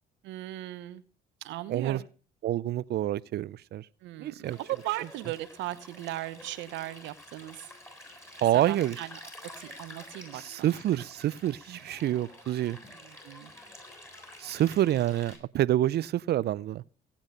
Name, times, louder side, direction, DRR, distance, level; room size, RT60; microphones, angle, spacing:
voice 1, 0.2-1.0 1.4-2.1 4.0-7.7 8.5-10.7 12.8-13.5, right 15 dB, 85° right, 1.0 m, -38 dB
voice 2, 1.7-2.0 2.4-3.9 4.2-4.6 8.4-9.0 10.3-12.8 14.4-16.8, right 13 dB, 60° right, 0.5 m, -27 dB
Stream, 4.4-15.4, left 1 dB, 15° left, 7.5 m, -49 dB
17.0 x 8.8 x 5.2 m
supercardioid pair, 70°, 19 cm